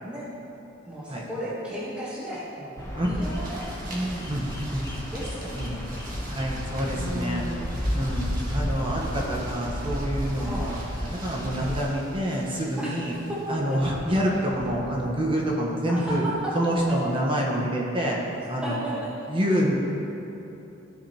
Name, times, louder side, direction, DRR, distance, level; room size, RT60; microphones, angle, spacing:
voice 1, 0.9-4.3 5.1-5.8 6.9-7.7 10.5-10.7 12.8-12.9 13.3-13.5 15.9-16.5 16.9-17.0 18.6-18.9 19.2-19.3, equal, 5° right, -9 dB, 1.3 m, -34 dB
Bird vocalization bird call bird song, 2.8-11.8, equal, 15° left, 1.0 m, -32 dB
sound 1, 3.2-14.9, right 1 dB, 45° right, 1.5 m, -45 dB
voice 2, 6.3-7.4 7.9-8.3 8.5-13.1 13.5-16.2 16.5-18.2 18.5-18.9 19.3-19.9, equal, 25° right, -3 dB, 1.1 m, -27 dB
14.5 x 5.1 x 2.9 m, 3.0 s
head